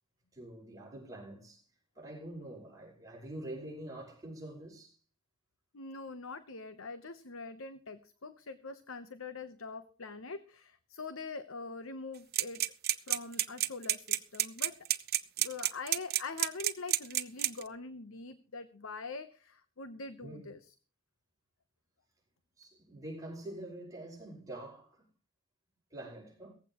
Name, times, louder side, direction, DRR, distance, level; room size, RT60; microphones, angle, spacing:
voice 1, 0.3-1.7 2.0-5.0 20.2-20.5 22.6-25.0 25.9-26.5, right 1 dB, 15° right, 5.3 m, -45 dB
voice 2, 5.7-12.6 13.1-14.8 15.4-20.7, left 4 dB, 70° left, 1.0 m, -44 dB
sound 1, 12.3-17.7, right 13 dB, 50° right, 1.0 m, -29 dB
18.0 x 15.5 x 3.0 m
head